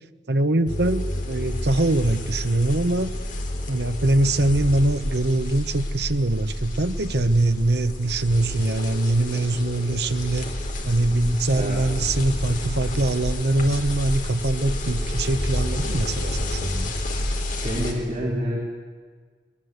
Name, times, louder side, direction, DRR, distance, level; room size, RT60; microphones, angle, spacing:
voice 1, 0.3-3.1 3.7-10.5 10.8-16.9, right 2 dB, 65° right, 10 dB, 1.1 m, -23 dB
sound 1, 0.7-17.9, left 1 dB, 45° left, 3.6 m, -29 dB
voice 2, 11.5-11.8 17.6-18.6, equal, 40° right, -4 dB, 4.4 m, -27 dB
21.5 x 21.0 x 8.1 m, 1.5 s
head